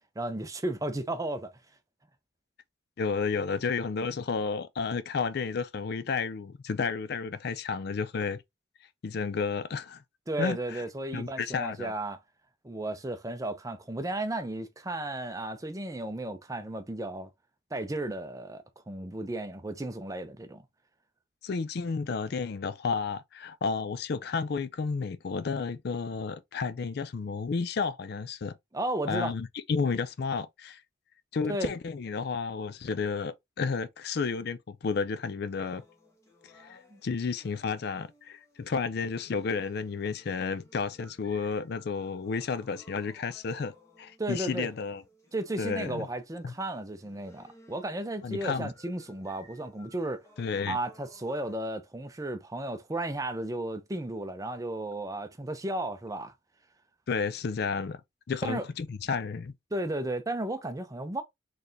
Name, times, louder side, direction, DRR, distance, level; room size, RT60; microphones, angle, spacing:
voice 1, 0.2-1.6 10.3-12.2 12.6-17.3 17.7-20.7 28.7-29.3 31.5-31.7 36.9-37.0 44.2-44.7 45.3-50.3 50.7-56.3 58.4-58.7 59.7-61.2, right 1 dB, 15° right, 0.6 m, -34 dB
voice 2, 3.0-8.4 9.0-10.0 10.4-10.8 11.1-11.9 21.4-28.5 29.1-30.8 31.3-35.8 36.4-43.7 44.0-45.0 45.6-46.1 46.4-46.5 48.2-48.7 50.4-50.8 57.1-58.0 58.3-59.5, left 5 dB, 55° left, 0.4 m, -32 dB
sound 1, 35.5-51.5, equal, 15° left, 1.2 m, -58 dB
4.1 x 3.3 x 2.7 m
head